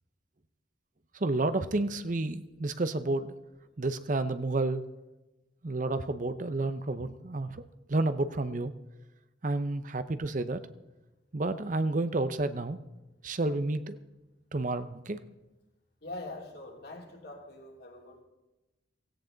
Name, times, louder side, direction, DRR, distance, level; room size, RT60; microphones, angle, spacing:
voice 1, 1.2-3.4 3.8-4.8 5.6-7.6 7.9-8.7 9.4-10.6 11.3-12.8 13.2-14.0 14.5-15.2, right 2 dB, 40° right, 12 dB, 0.7 m, -30 dB
voice 2, 16.0-18.2, left 2 dB, 55° left, 0 dB, 3.1 m, -43 dB
17.0 x 17.0 x 3.9 m, 1.0 s
head